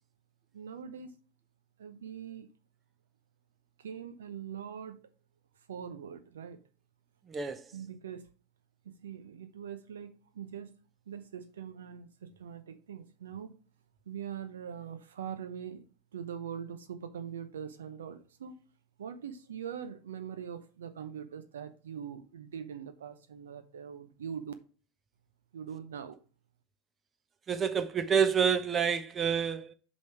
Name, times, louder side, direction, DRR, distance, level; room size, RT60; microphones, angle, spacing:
voice 1, 0.5-1.2 1.8-2.5 3.8-5.1 5.7-6.6 7.7-8.3 8.8-10.7 11.1-13.5 14.1-15.8 16.1-18.6 19.0-24.5 25.5-26.2, right 8 dB, 75° right, 0.8 m, -42 dB
voice 2, 7.3-7.6 27.5-29.7, right 7 dB, 30° right, 0.7 m, -28 dB
5.2 x 5.2 x 4.8 m
hypercardioid pair, 85°, 0 cm